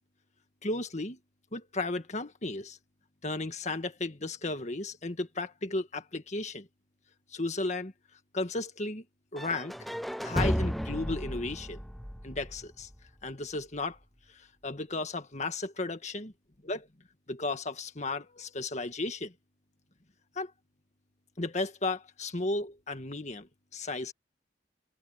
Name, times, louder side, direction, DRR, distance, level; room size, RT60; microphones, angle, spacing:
voice 1, 0.6-1.2 1.5-2.8 3.2-6.7 7.3-7.9 8.3-9.0 9.3-9.7 10.2-11.8 12.2-12.9 13.2-14.0 14.4-16.3 16.6-16.9 17.3-19.3 20.4-20.5 21.4-24.1, left 2 dB, 40° left, 1.8 m, -34 dB
sound 1, 9.4-13.3, equal, ahead, 0.4 m, -33 dB
head